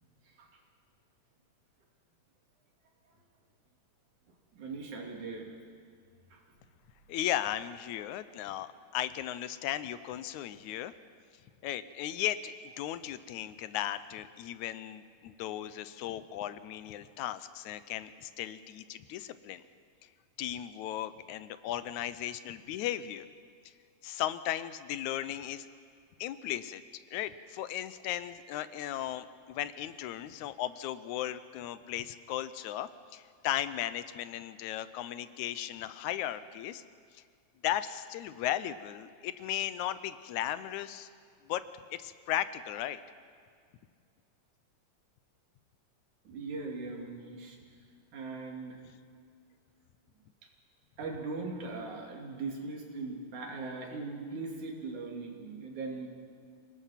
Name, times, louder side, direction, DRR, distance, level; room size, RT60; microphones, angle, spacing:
voice 1, 4.5-5.6 6.3-6.4 46.3-47.6 48.1-48.8 51.0-56.1, right 3 dB, 90° right, 0 dB, 4.2 m, -39 dB
voice 2, 7.1-10.9 11.6-19.6 20.4-23.3 24.0-25.7 26.2-26.8 27.1-36.8 37.1-37.2 37.6-41.1 41.4-41.6 41.9-43.0, left 12 dB, 85° left, 14 dB, 2.1 m, -36 dB
28.0 x 19.0 x 5.9 m, 2.1 s
omnidirectional pair, 3.3 m